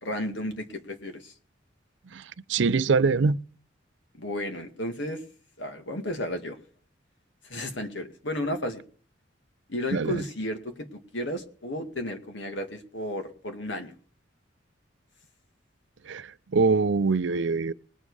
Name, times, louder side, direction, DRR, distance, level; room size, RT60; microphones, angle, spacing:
voice 1, 0.0-1.3 4.2-5.2 5.6-6.6 7.4-8.8 9.7-13.9, left 1 dB, 70° left, 2.1 m, -33 dB
voice 2, 2.5-3.4 9.9-10.2 16.1-16.3 16.5-17.7, right 4 dB, 70° right, 0.5 m, -23 dB
20.5 x 7.3 x 4.9 m
head